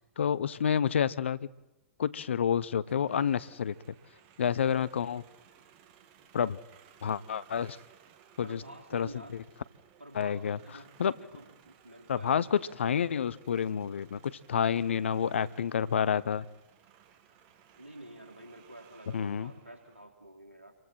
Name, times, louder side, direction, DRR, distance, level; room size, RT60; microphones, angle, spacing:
voice 1, 0.0-1.5 2.0-3.7 4.4-5.2 6.3-6.6 7.0-7.8 8.4-8.6 8.9-9.4 10.1-10.6 11.0-11.1 12.1-16.4 19.1-19.5, left 8 dB, 70° left, 19 dB, 0.7 m, -29 dB
sound 1, 2.5-20.0, right 9 dB, 40° right, 2.1 m, -60 dB
voice 2, 8.4-9.4 10.0-12.8 17.8-20.8, right 1 dB, 90° right, 2 dB, 3.4 m, -50 dB
28.0 x 23.0 x 4.5 m, 0.97 s
figure-of-eight pair, 110°, 7 cm